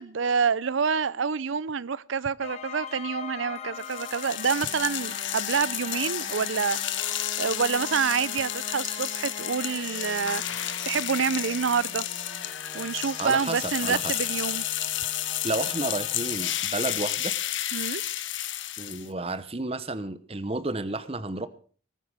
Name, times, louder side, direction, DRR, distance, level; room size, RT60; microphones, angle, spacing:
voice 1, 0.0-6.8 7.1-12.0 12.7-14.6 17.7-18.0, right 6 dB, 75° right, 0.6 m, -27 dB
sound 1, 2.4-16.8, left 4 dB, 35° left, 1.7 m, -42 dB
sound 2, 3.8-19.1, left 12 dB, 70° left, 1.2 m, -32 dB
voice 2, 13.2-14.2 15.4-17.3 18.8-21.5, right 2 dB, 30° right, 0.9 m, -31 dB
19.0 x 9.2 x 6.3 m
head